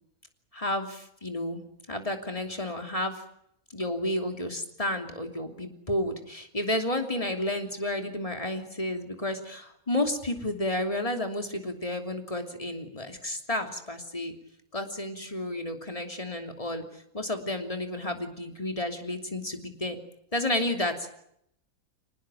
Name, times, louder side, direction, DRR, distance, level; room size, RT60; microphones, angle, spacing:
voice 1, 0.5-1.6 1.9-3.2 3.7-14.3 14.7-20.0 20.3-21.2, left 1 dB, 25° left, 5 dB, 3.0 m, -31 dB
26.0 x 19.5 x 8.8 m, 0.74 s
omnidirectional pair, 1.5 m